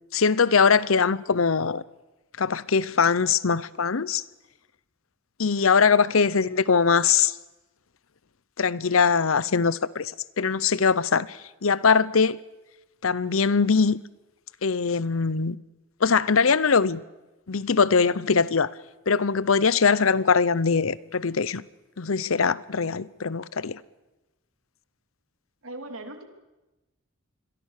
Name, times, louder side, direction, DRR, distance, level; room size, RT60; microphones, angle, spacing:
voice 1, 0.1-1.8 2.4-4.2 5.4-7.3 8.6-12.4 13.0-14.0 14.6-15.6 16.0-17.0 17.5-18.7 19.1-21.6 22.0-23.8, left 5 dB, 85° left, 0.8 m, -22 dB
voice 2, 5.7-6.1 25.6-26.2, right 2 dB, 85° right, 3.2 m, -40 dB
27.5 x 22.5 x 6.7 m
head